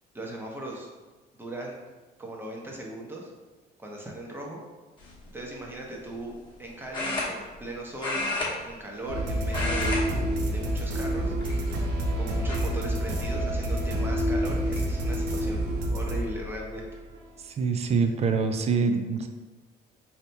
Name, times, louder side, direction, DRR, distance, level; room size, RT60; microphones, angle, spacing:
voice 1, 0.1-0.9 1.4-1.8 2.2-3.3 3.8-4.6 5.3-8.2 8.6-10.0 10.5-11.3 12.2-15.6 15.9-16.9, right 1 dB, 15° right, -1 dB, 0.8 m, -38 dB
sound 1, 5.0-5.3 6.9-7.7 8.0-9.2 9.4-10.0 10.3-10.6 11.4-11.9 12.5-12.6 14.0-14.1 14.4-14.8, left 2 dB, 30° left, 1.1 m, -31 dB
sound 2, 9.1-17.2, right 1 dB, 85° right, 0.7 m, -28 dB
voice 2, 17.5-19.3, right 5 dB, 40° right, 6 dB, 0.4 m, -25 dB
4.1 x 2.8 x 3.3 m, 1.2 s
cardioid pair, 110°, 17 cm